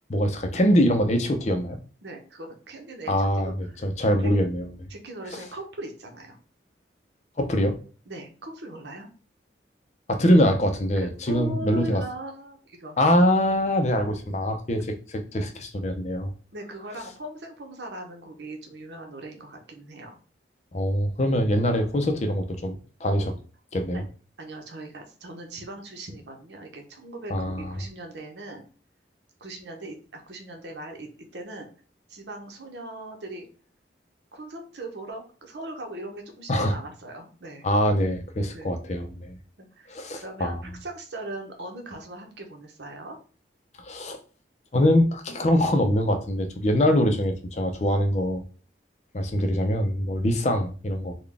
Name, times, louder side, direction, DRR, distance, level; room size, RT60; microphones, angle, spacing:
voice 1, 0.1-1.8 3.1-4.7 7.4-7.8 10.1-12.0 13.0-16.3 20.7-23.3 23.7-24.0 27.3-27.7 36.5-36.7 37.6-39.4 39.9-40.6 43.8-44.2 44.7-48.4 49.1-51.2, equal, 40° left, 5 dB, 0.5 m, -23 dB
voice 2, 2.0-3.3 3.6-3.8 4.9-6.4 8.1-9.1 11.0-13.0 16.5-20.1 23.9-24.1 24.4-28.6 29.4-31.7 32.1-33.5 34.3-37.7 38.5-38.7 39.6-43.2, right 2 dB, 80° right, 3 dB, 0.9 m, -39 dB
3.9 x 2.3 x 3.3 m, 0.38 s
head